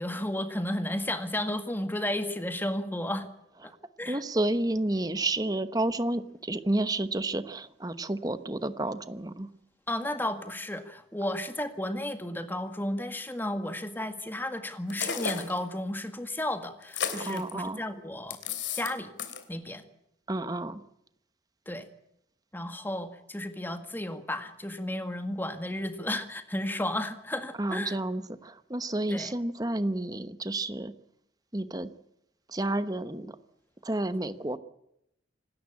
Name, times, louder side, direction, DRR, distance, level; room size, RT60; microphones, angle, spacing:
voice 1, 0.0-3.3 3.6-3.7 4.0-4.2 9.9-18.4 18.7-19.1 19.5-19.8 21.7-21.9 22.5-28.0 29.1-29.3, left 1 dB, 10° left, 8 dB, 1.9 m, -33 dB
voice 2, 4.1-9.5 17.2-17.8 20.3-20.8 27.6-30.9 31.5-31.9 32.5-33.3 33.8-34.6, right 1 dB, 20° right, 12 dB, 1.1 m, -30 dB
sound 1, 14.9-15.6 16.8-17.5 18.3-18.9 19.2-19.4, left 7 dB, 85° left, 3.1 m, -33 dB
26.5 x 13.0 x 8.5 m, 0.79 s
head